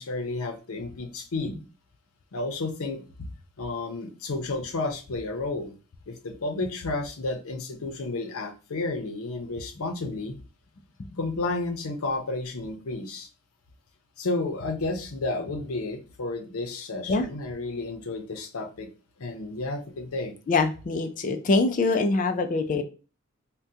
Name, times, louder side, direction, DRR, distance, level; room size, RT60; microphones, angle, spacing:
voice 1, 0.0-1.6 2.3-3.3 3.6-5.7 6.1-10.4 11.2-13.3 14.2-18.9 19.2-20.3, left 2 dB, 85° left, 6 dB, 0.7 m, -32 dB
voice 2, 20.5-22.8, left 3 dB, 40° left, 7 dB, 0.4 m, -24 dB
3.6 x 2.2 x 2.7 m, 0.33 s
head